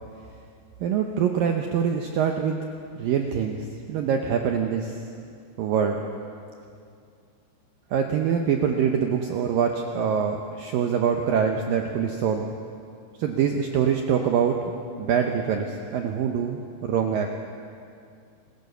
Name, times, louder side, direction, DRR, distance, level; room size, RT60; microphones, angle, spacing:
voice 1, 0.8-2.6 3.0-5.0 5.6-6.0 7.9-12.5 13.2-14.7 15.0-17.3, right 7 dB, 85° right, 3 dB, 2.0 m, -24 dB
26.5 x 16.0 x 6.9 m, 2.4 s
omnidirectional pair, 5.4 m